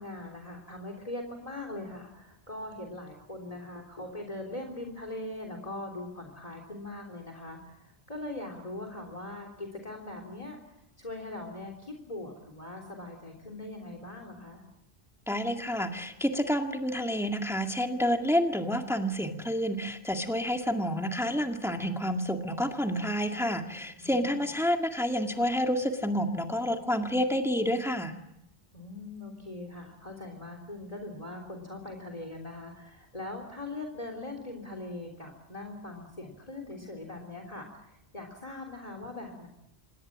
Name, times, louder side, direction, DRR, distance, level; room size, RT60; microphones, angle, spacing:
voice 1, 0.0-10.6 11.0-14.6 24.0-24.5 28.7-39.5, left 2 dB, 35° left, 4 dB, 3.6 m, -41 dB
voice 2, 15.3-28.1, equal, ahead, 3 dB, 2.0 m, -29 dB
27.5 x 20.5 x 7.5 m, 0.81 s
omnidirectional pair, 1.1 m